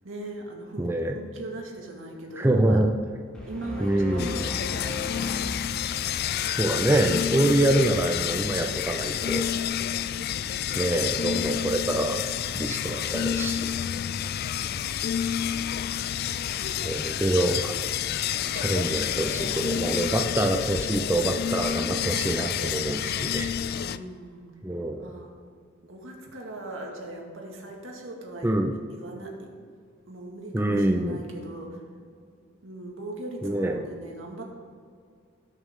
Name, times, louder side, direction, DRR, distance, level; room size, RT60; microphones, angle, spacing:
voice 1, 0.0-2.8 3.5-5.5 10.0-10.8 18.4-18.8 23.8-24.5 25.0-25.3 25.8-28.5 28.9-29.5 30.1-31.8 32.6-34.4, right 1 dB, 75° right, 0 dB, 2.1 m, -40 dB
voice 2, 0.8-1.1 2.4-2.9 3.8-4.5 6.6-9.4 10.8-12.2 12.5-13.7 16.8-17.8 18.5-23.5 24.6-25.1 28.4-28.8 30.5-31.2 33.4-33.8, right 1 dB, 10° right, 3 dB, 0.5 m, -25 dB
sound 1, 3.3-6.7, left 2 dB, 5° left, 2.0 m, -37 dB
sound 2, 4.2-24.0, left 9 dB, 50° left, 0.3 m, -29 dB
19.0 x 6.5 x 3.7 m, 2.2 s
head